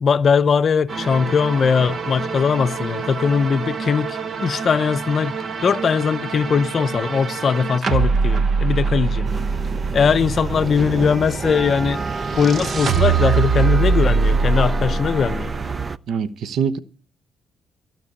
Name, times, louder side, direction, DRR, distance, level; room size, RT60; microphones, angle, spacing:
voice 1, 0.0-5.3 5.6-9.3 9.9-12.0 12.3-15.5, left 6 dB, 50° left, 0.7 m, -20 dB
sound 1, 0.9-15.9, right 5 dB, 50° right, 1.2 m, -24 dB
sound 2, 9.2-16.0, right 4 dB, 30° right, 0.5 m, -29 dB
voice 2, 16.1-16.8, right 7 dB, 70° right, 1.0 m, -23 dB
15.0 x 6.0 x 8.4 m
cardioid pair, 90°, 0 cm